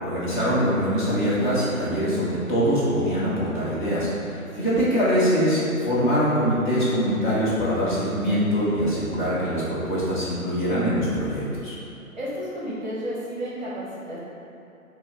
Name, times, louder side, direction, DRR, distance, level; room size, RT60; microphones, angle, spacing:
voice 1, 0.0-11.7, equal, 35° left, -9 dB, 1.1 m, -23 dB
voice 2, 12.2-14.2, equal, 30° right, -7 dB, 0.8 m, -32 dB
4.7 x 2.3 x 3.4 m, 2.8 s
figure-of-eight pair, 140°, 43 cm